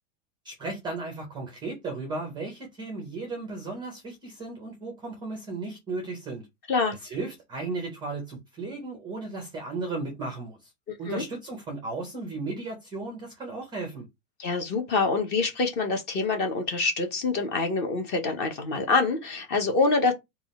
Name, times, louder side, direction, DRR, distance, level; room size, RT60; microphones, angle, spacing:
voice 1, 0.4-6.5 7.0-10.7 11.0-14.1, right 3 dB, 10° right, 0.5 m, -35 dB
voice 2, 10.9-11.2 14.4-20.1, left 3 dB, 25° left, 0.8 m, -26 dB
3.5 x 2.4 x 4.1 m
supercardioid pair, 170°, 42 cm